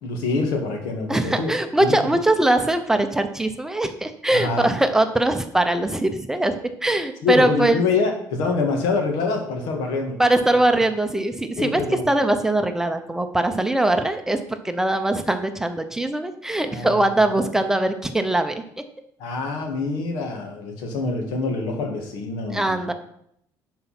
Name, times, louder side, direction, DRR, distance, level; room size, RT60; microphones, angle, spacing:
voice 1, 0.0-1.5 1.8-2.0 4.3-4.8 7.2-10.2 11.6-12.0 16.7-17.4 19.2-22.8, left 4 dB, 90° left, 3 dB, 2.1 m, -25 dB
voice 2, 1.1-7.8 10.2-18.6 22.5-22.9, right 1 dB, 5° right, 7 dB, 0.6 m, -21 dB
11.0 x 4.4 x 5.8 m, 0.72 s
cardioid pair, 160°, 7 cm